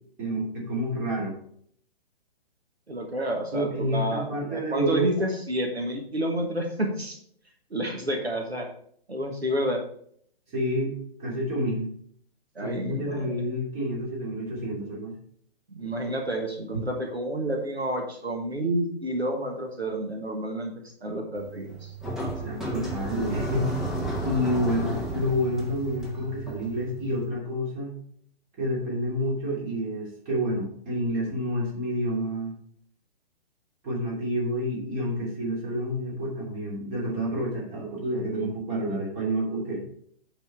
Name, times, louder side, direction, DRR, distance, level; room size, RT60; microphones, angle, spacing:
voice 1, 0.2-1.3 3.5-5.0 10.5-10.9 11.2-11.9 12.6-15.2 22.4-23.7 24.2-27.9 28.6-32.5 33.8-39.8, equal, 25° right, -4 dB, 2.8 m, -29 dB
voice 2, 2.9-7.2 7.7-8.7 9.1-9.8 12.5-13.3 15.7-21.9, right 1 dB, 85° right, 3 dB, 1.3 m, -30 dB
sound 1, 21.4-27.3, right 1 dB, ahead, 0.5 m, -33 dB
8.0 x 4.3 x 4.6 m, 0.63 s
figure-of-eight pair, 125°, 31 cm